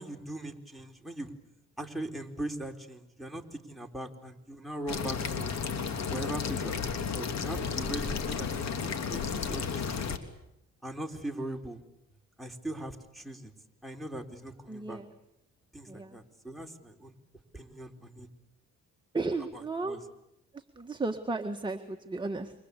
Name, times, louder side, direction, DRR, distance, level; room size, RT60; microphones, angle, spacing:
voice 1, 0.0-1.3 1.8-5.5 6.1-10.2 10.8-11.8 12.4-13.5 13.8-15.0 15.7-17.1 17.5-18.3 19.5-20.0, right 1 dB, ahead, 1 dB, 4.1 m, -40 dB
sound 1, 4.9-10.2, left 6 dB, 60° left, 3.1 m, -33 dB
voice 2, 14.7-15.1 15.9-16.2 19.1-20.0 20.5-22.5, right 3 dB, 15° right, 4 dB, 1.8 m, -34 dB
28.5 x 25.0 x 8.5 m, 0.84 s
cardioid pair, 90°, 30 cm